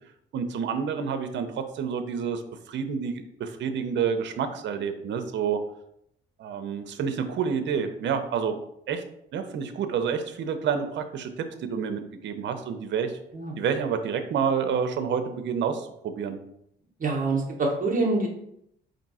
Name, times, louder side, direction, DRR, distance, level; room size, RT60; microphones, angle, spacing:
voice 1, 0.3-2.4 2.7-5.6 6.4-8.6 8.9-9.0 9.3-13.2 13.6-16.4, right 6 dB, 65° right, 8 dB, 0.6 m, -28 dB
voice 2, 17.0-18.3, right 3 dB, 45° right, 0 dB, 0.9 m, -25 dB
4.4 x 2.6 x 4.1 m, 0.75 s
cardioid pair, 90°, 20 cm